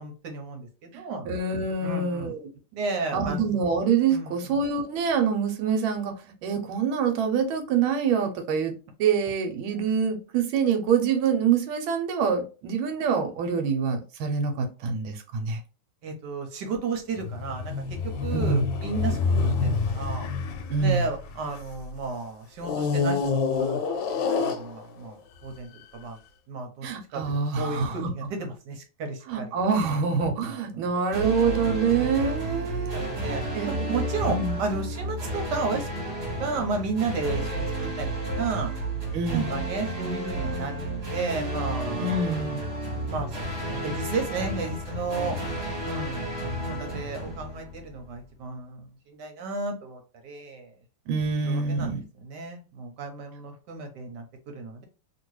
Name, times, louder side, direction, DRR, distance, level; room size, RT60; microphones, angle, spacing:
voice 1, 0.0-1.3 1.8-2.3 2.7-3.4 4.1-4.6 16.0-20.3 20.8-23.8 24.4-26.2 26.5-26.9 27.1-29.5 29.8-29.9 30.4-30.6 31.9-32.5 32.8-38.7 39.3-42.3 43.0-43.4 43.7-45.4 45.8-46.3 46.7-50.7 51.4-52.0 52.2-54.8, right 4 dB, 65° right, 1.3 m, -33 dB
voice 2, 0.9-2.5 3.1-6.1 6.4-8.7 9.0-15.6 18.3-18.6 20.7-21.0 26.8-28.1 29.3-33.2 33.5-33.9 34.3-34.6 39.1-39.5 42.0-42.6 51.1-52.0, right 5 dB, 85° right, 1.5 m, -26 dB
sound 1, 17.2-21.9 22.6-25.1 25.8-25.9, left 4 dB, 75° left, 1.3 m, -27 dB
sound 2, 31.1-48.2, right 1 dB, 40° right, 1.2 m, -31 dB
2.9 x 2.8 x 3.1 m
omnidirectional pair, 2.2 m